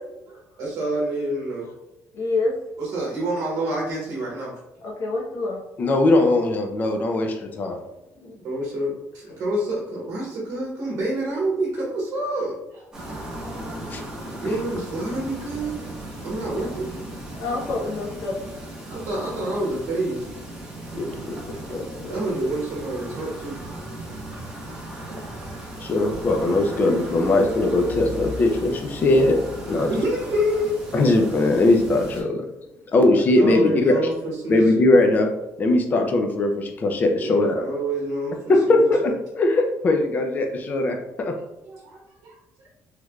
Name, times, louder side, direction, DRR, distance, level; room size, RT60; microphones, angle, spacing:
voice 1, 0.6-1.7 2.8-4.5 6.2-6.3 8.3-8.9 9.4-12.8 13.8-14.0 14.4-15.8 16.2-16.9 18.9-20.3 21.5-23.6 25.0-25.2 25.7-25.8 29.6-30.8 33.3-34.8 37.2-39.1 41.6-42.4, right 1 dB, 55° right, -4 dB, 1.0 m, -28 dB
voice 2, 2.1-2.5 4.8-5.6 8.2-8.4 17.4-18.3, left 3 dB, 60° left, -2 dB, 0.9 m, -27 dB
voice 3, 5.8-7.8 13.9-14.0 21.0-21.3 21.7-22.1 25.8-29.4 29.7-29.9 30.9-32.5 32.9-33.9 34.5-35.3 35.6-37.7 38.5-41.3, left 2 dB, 30° left, 3 dB, 0.4 m, -20 dB
sound 1, 12.9-32.2, right 1 dB, 10° right, 1.0 m, -36 dB
3.2 x 3.1 x 2.4 m, 0.92 s
cardioid pair, 155°, 6 cm